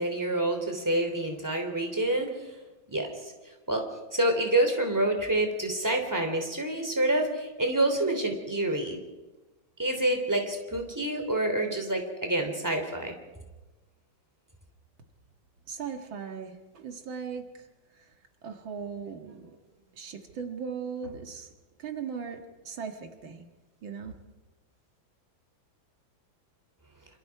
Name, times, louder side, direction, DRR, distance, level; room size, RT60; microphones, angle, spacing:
voice 1, 0.0-2.6 2.9-3.3 3.7-9.0 9.8-13.1, right 1 dB, 10° right, 4 dB, 3.1 m, -27 dB
voice 2, 15.7-17.5 18.0-18.1 18.4-19.6 19.9-21.5 21.8-23.5 23.8-24.1, right 6 dB, 80° right, 5 dB, 2.5 m, -38 dB
27.0 x 27.0 x 4.8 m, 1.1 s
omnidirectional pair, 2.1 m